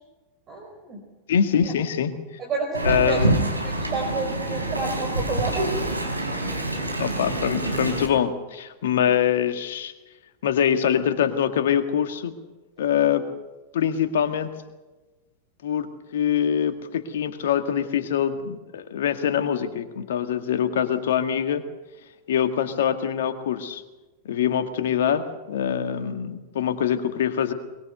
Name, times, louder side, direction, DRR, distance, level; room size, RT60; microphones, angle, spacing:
voice 1, 0.5-1.0 1.6-1.7 2.4-3.2 3.6-6.0, right 3 dB, 30° right, 2 dB, 4.9 m, -30 dB
voice 2, 1.3-2.1 2.8-3.4 7.0-9.9 10.4-12.3 12.8-13.3 13.7-14.5 15.6-21.6 22.3-23.8 24.3-27.5, left 8 dB, 60° left, 8 dB, 1.9 m, -24 dB
Wind, 2.7-8.1, right 2 dB, 85° right, 3.9 m, -26 dB
23.0 x 22.5 x 6.8 m, 1.2 s
figure-of-eight pair, 90°, 0 cm